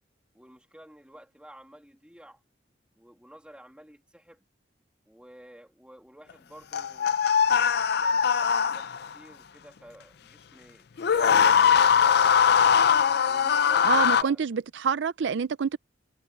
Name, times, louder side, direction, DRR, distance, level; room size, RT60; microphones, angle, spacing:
voice 1, 0.3-2.4 3.0-4.4 5.1-7.2 7.5-12.4 13.2-14.4, equal, 5° right, 2.0 m, -51 dB
sound 1, 6.7-9.1 11.0-14.2, left 7 dB, 60° left, 0.5 m, -21 dB
voice 2, 13.8-15.8, right 6 dB, 70° right, 0.5 m, -27 dB
head